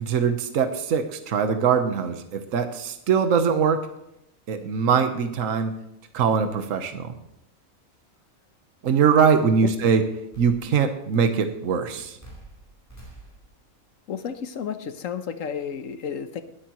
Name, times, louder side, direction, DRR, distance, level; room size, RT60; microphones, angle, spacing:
voice 1, 0.0-3.9 4.5-5.7 6.1-7.1 8.8-10.0 10.4-12.2, right 6 dB, 70° right, 7 dB, 1.4 m, -22 dB
sound 1, 7.9-8.0 8.9-9.0 9.3-9.7 10.3-10.9 11.1-11.5 12.2-13.7, right 2 dB, 10° left, 4.4 m, -47 dB
voice 2, 14.1-16.4, left 7 dB, 70° left, 10 dB, 1.2 m, -32 dB
21.0 x 8.6 x 3.0 m, 0.82 s
omnidirectional pair, 1.5 m